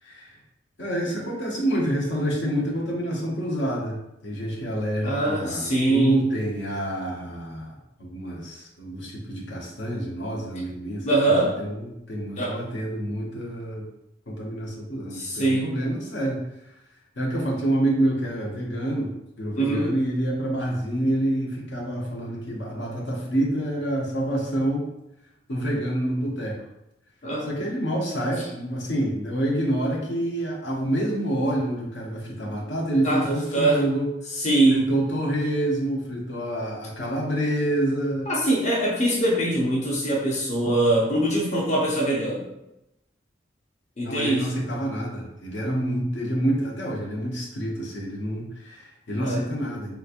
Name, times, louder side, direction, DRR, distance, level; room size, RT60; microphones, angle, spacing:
voice 1, 0.0-0.4 0.8-13.9 14.3-16.4 16.7-16.8 17.2-19.1 19.4-24.9 25.5-26.6 27.4-34.1 34.7-38.3 44.0-50.0, right 1 dB, 75° left, -3 dB, 0.8 m, -27 dB
voice 2, 5.0-6.2 11.0-11.6 12.4-12.6 15.1-15.8 19.6-19.9 27.2-27.5 33.0-33.8 34.4-34.8 38.3-42.4 44.0-44.5 49.2-49.4, right 1 dB, 40° left, -4 dB, 0.6 m, -23 dB
3.3 x 3.0 x 2.4 m, 0.87 s
head